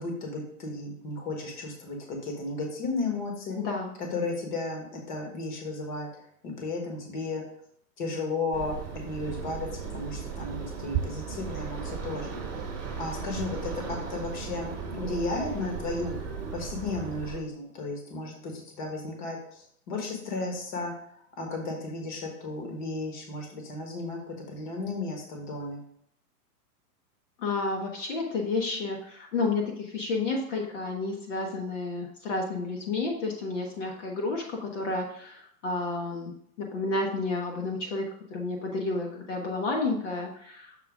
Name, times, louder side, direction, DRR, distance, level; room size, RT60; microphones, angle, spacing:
voice 1, 0.0-3.6 4.0-6.1 6.4-7.4 8.0-8.8 9.0-20.9 21.4-24.2 24.5-25.8, left 3 dB, 30° left, 2 dB, 1.3 m, -34 dB
voice 2, 3.5-3.9 27.4-40.9, left 3 dB, 50° left, 0 dB, 1.2 m, -31 dB
sound 1, 8.5-17.4, right 6 dB, 15° right, 1.3 m, -36 dB
6.8 x 3.9 x 4.9 m, 0.67 s
hypercardioid pair, 175°, 46 cm